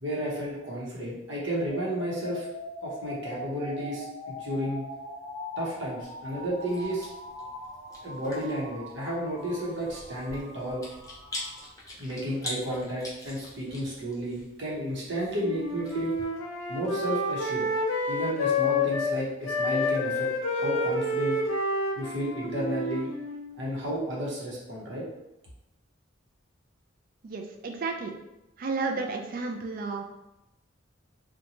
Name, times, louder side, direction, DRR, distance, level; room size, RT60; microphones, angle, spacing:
voice 1, 0.0-2.5 2.8-4.8 5.6-7.1 8.0-10.8 12.0-16.1 16.7-17.7 18.1-21.4 22.0-23.1 23.6-25.0, equal, 65° right, -4 dB, 0.8 m, -32 dB
sound 1, 1.7-11.7, left 1 dB, 20° right, 1.3 m, -42 dB
Chewing mastication, 6.0-16.2, left 1 dB, 15° left, 0.5 m, -44 dB
Wind instrument woodwind instrument, 15.4-19.1 19.4-23.5, left 2 dB, 75° left, 0.5 m, -29 dB
voice 2, 27.2-28.1 28.6-30.0, right 3 dB, 45° right, 3 dB, 0.3 m, -32 dB
2.7 x 2.2 x 2.9 m, 0.93 s
head